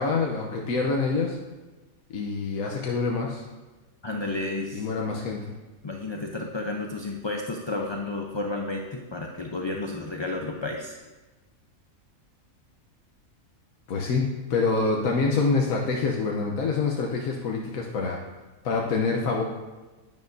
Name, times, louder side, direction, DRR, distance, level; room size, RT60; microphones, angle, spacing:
voice 1, 0.0-1.4 2.1-3.4 4.7-5.4 13.9-18.2 18.6-19.4, left 4 dB, 85° left, 0 dB, 1.3 m, -26 dB
voice 2, 4.0-4.9 5.8-11.0, left 2 dB, 30° left, 1 dB, 0.5 m, -31 dB
10.5 x 9.6 x 2.6 m, 1.2 s
omnidirectional pair, 1.4 m